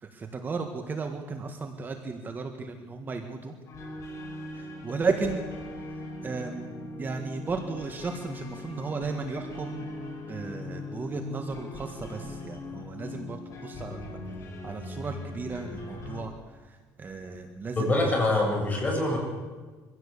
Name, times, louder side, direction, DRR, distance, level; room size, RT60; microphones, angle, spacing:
voice 1, 0.0-3.6 4.5-5.4 6.2-9.8 10.3-14.2 14.6-16.3 16.6-18.2, right 4 dB, 25° right, 5 dB, 1.7 m, -34 dB
sound 1, 3.7-16.2, left 2 dB, 45° left, 5.1 m, -40 dB
voice 2, 17.8-19.2, left 2 dB, 20° left, 0 dB, 7.3 m, -25 dB
24.0 x 16.0 x 8.5 m, 1.4 s
cardioid pair, 140°, 7 cm